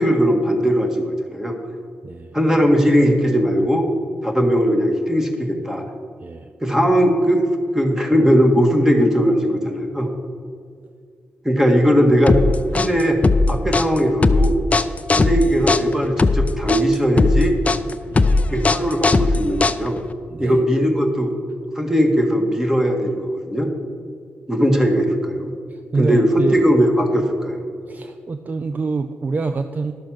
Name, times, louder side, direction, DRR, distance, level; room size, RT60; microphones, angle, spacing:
voice 1, 0.0-1.6 2.3-3.9 4.2-5.8 6.6-7.4 7.7-10.1 11.5-12.4 12.7-13.2 13.5-14.6 15.1-17.5 18.5-20.0 20.4-21.3 21.8-23.7 24.5-25.5 26.0-27.6, equal, 10° right, 3 dB, 1.7 m, -18 dB
voice 2, 2.0-2.4 6.2-6.5 18.1-18.5 20.3-20.6 25.7-26.6 27.9-29.9, right 4 dB, 40° right, 9 dB, 0.5 m, -26 dB
sound 1, 12.3-20.1, left 3 dB, 30° left, 0.5 m, -17 dB
11.5 x 6.4 x 6.2 m, 2.2 s
cardioid pair, 75°, 4 cm